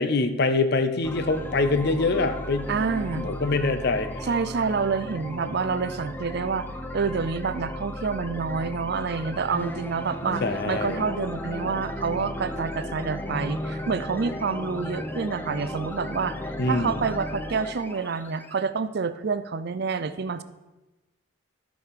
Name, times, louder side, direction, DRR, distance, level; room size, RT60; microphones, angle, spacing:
voice 1, 0.0-2.7 3.1-4.3 10.4-11.0 16.6-17.0, left 3 dB, 50° left, 10 dB, 0.6 m, -24 dB
sound 1, 1.0-18.6, left 1 dB, 10° left, 0.4 m, -35 dB
voice 2, 2.7-3.3 4.2-6.7 6.9-16.4 16.6-20.4, right 5 dB, 50° right, 12 dB, 0.4 m, -28 dB
13.0 x 5.1 x 4.9 m, 1.1 s
head